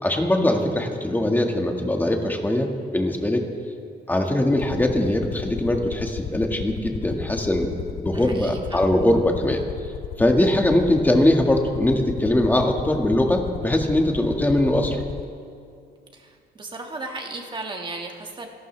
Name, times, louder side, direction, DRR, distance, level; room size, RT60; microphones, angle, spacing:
voice 1, 0.0-3.4 4.1-9.6 10.2-15.0, left 1 dB, 10° left, 2 dB, 1.7 m, -21 dB
Aircraft, 4.6-15.2, left 10 dB, 60° left, 0.6 m, -35 dB
voice 2, 8.1-8.8 16.1-16.3 16.6-18.5, right 2 dB, 25° right, 2 dB, 1.9 m, -35 dB
28.0 x 12.0 x 3.3 m, 2.4 s
cardioid pair, 115°, 18 cm